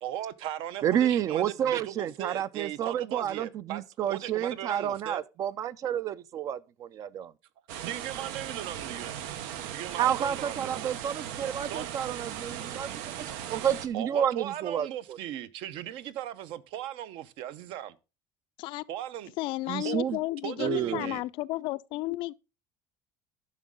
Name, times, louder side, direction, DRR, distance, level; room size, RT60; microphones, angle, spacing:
voice 1, 0.0-5.2 7.0-7.1 7.8-9.2 9.7-10.9 11.7-11.9 13.9-18.0 18.9-19.3 19.8-20.0 20.4-21.2, right 12 dB, 60° right, 0.7 m, -38 dB
voice 2, 0.8-7.3 10.0-12.9 13.2-15.2 19.7-20.2 20.6-21.1, right 10 dB, 35° right, 0.3 m, -30 dB
sound 1, 7.7-13.9, right 10 dB, 90° right, 1.0 m, -38 dB
voice 3, 19.4-22.3, left 19 dB, 55° left, 0.4 m, -32 dB
11.5 x 6.2 x 3.6 m
cardioid pair, 170°, 10 cm